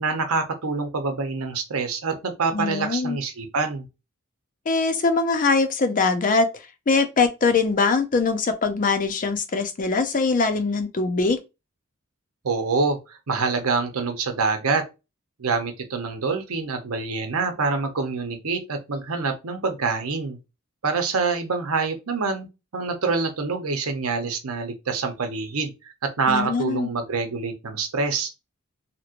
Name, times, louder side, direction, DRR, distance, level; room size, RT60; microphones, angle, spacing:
voice 1, 0.0-3.9 12.4-14.8 15.4-20.4 20.8-22.5 22.7-25.7 26.0-28.3, right 4 dB, 80° right, 0.7 m, -26 dB
voice 2, 2.5-3.2 4.7-6.5 6.9-11.4 26.3-26.9, left 4 dB, 40° left, 0.4 m, -22 dB
2.9 x 2.9 x 2.5 m
head